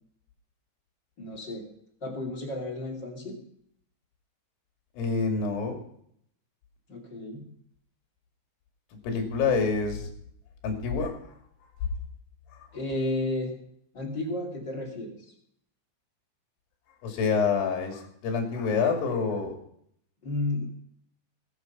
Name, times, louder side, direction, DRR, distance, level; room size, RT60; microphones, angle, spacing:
voice 1, 1.2-1.6 2.0-3.4 6.9-7.4 12.7-13.5 13.9-15.2 20.2-20.7, left 1 dB, 30° left, -1 dB, 2.5 m, -32 dB
voice 2, 5.0-5.8 9.0-10.1 10.6-11.2 12.6-12.7 17.0-19.6, left 5 dB, 55° left, 3 dB, 3.9 m, -27 dB
20.0 x 8.7 x 5.9 m, 0.69 s
omnidirectional pair, 5.4 m